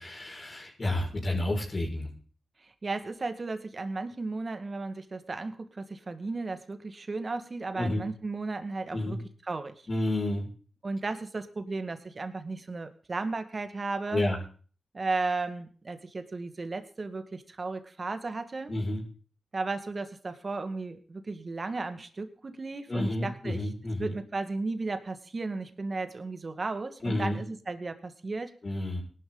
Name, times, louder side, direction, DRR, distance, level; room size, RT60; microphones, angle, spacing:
voice 1, 0.0-2.1 7.7-8.1 8.9-9.2 9.9-10.5 14.1-14.4 18.7-19.0 22.9-24.1 27.0-27.4 28.6-29.0, left 1 dB, 45° left, 0 dB, 5.9 m, -30 dB
voice 2, 2.6-9.2 9.5-9.7 10.8-14.2 14.9-18.7 19.5-23.6 24.0-28.5, right 3 dB, 50° right, 8 dB, 2.0 m, -34 dB
18.5 x 12.0 x 4.0 m, 0.42 s
cardioid pair, 45°, 0 cm